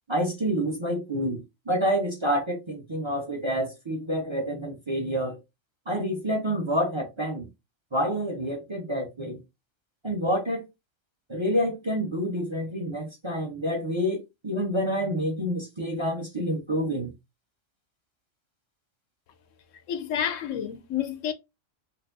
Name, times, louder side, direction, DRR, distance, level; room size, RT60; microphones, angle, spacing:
voice 1, 0.1-1.4 1.7-5.4 5.9-7.4 7.9-9.4 10.0-10.6 11.3-17.1, equal, 25° right, 0.8 m, -28 dB
voice 2, 19.9-21.3, left 9 dB, 80° left, 1.0 m, -29 dB
4.4 x 2.6 x 2.6 m
omnidirectional pair, 1.3 m